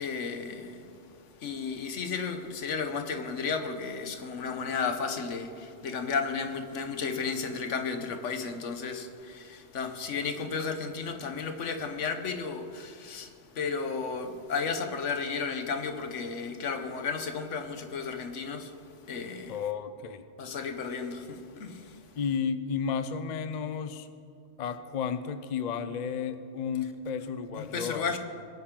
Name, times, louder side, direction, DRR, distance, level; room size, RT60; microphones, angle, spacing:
voice 1, 0.0-19.6 20.4-22.2 27.5-28.2, left 5 dB, 80° left, 1.3 m, -33 dB
voice 2, 19.5-20.2 22.2-24.1 24.6-28.2, left 6 dB, 50° left, 0.6 m, -33 dB
21.5 x 8.9 x 3.7 m
omnidirectional pair, 1.2 m